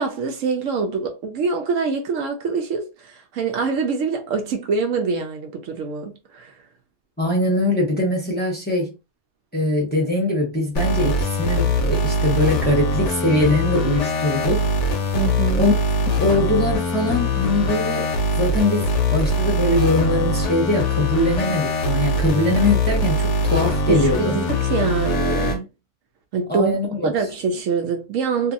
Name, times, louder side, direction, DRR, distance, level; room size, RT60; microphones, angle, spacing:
voice 1, 0.0-6.6 15.1-15.6 23.9-25.7 26.3-26.8 27.0-28.5, right 5 dB, 70° right, 0.9 m, -24 dB
voice 2, 7.2-9.0 9.5-14.7 15.6-15.7 16.2-18.1 18.4-24.4 26.5-27.1, left 1 dB, 10° left, 0.8 m, -22 dB
sound 1, 10.8-25.6, left 1 dB, 65° left, 0.9 m, -22 dB
2.8 x 2.6 x 2.5 m
omnidirectional pair, 1.5 m